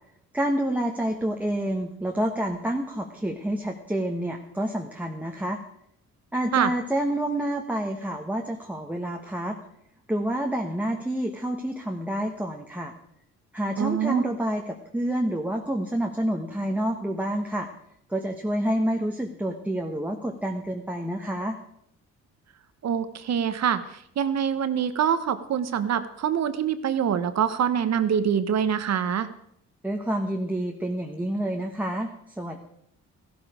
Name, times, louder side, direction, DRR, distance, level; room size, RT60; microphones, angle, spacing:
voice 1, 0.3-5.6 6.3-9.6 10.1-12.9 13.5-17.7 18.1-21.6 29.8-32.6, right 1 dB, 5° right, 2 dB, 1.3 m, -28 dB
voice 2, 13.8-14.2 22.8-29.3, right 8 dB, 60° right, 12 dB, 1.2 m, -25 dB
14.5 x 12.5 x 5.0 m, 0.72 s
cardioid pair, 90°, 30 cm